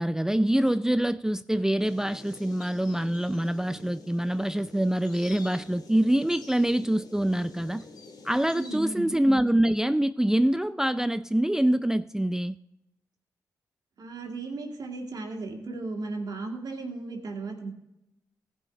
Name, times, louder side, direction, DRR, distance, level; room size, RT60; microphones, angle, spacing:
voice 1, 0.0-7.8 8.2-12.6, right 1 dB, 5° right, 13 dB, 0.4 m, -25 dB
sound 1, 1.8-8.8, left 3 dB, 70° left, 1.8 m, -47 dB
voice 2, 8.5-9.2 14.0-17.7, right 3 dB, 70° right, 2 dB, 2.3 m, -35 dB
15.0 x 5.7 x 5.0 m, 0.89 s
cardioid pair, 50°, 7 cm